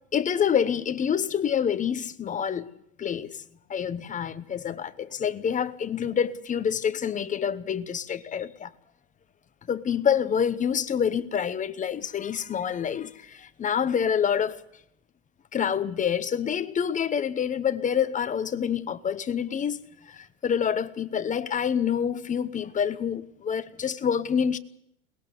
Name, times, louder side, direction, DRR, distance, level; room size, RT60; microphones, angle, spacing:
voice 1, 0.1-2.7 3.0-3.4 3.7-8.7 9.7-14.6 15.5-24.6, left 8 dB, 20° left, 0.9 m, -27 dB
22.0 x 20.0 x 7.1 m
supercardioid pair, 125°, 41 cm